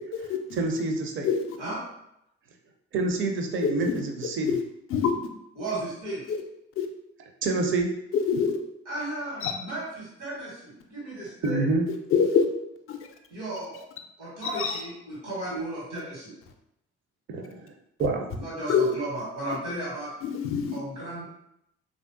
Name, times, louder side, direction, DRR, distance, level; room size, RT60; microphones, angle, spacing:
voice 1, 0.5-1.3 2.9-4.6 7.4-7.9 11.4-11.9 17.3-17.7 18.0-18.3, right 3 dB, 35° right, 4 dB, 0.5 m, -27 dB
voice 2, 5.5-6.2 8.8-11.6 13.3-13.7 14.2-16.3 18.3-20.1 20.7-21.2, right 1 dB, 80° right, -8 dB, 1.3 m, -35 dB
voice 3, 8.1-8.5 9.4-9.5 12.1-12.5 12.9-13.0 14.4-14.8 18.7-18.9 20.3-20.8, left 7 dB, 40° left, 5 dB, 0.5 m, -23 dB
3.3 x 2.5 x 2.5 m, 0.81 s
figure-of-eight pair, 45°, 35 cm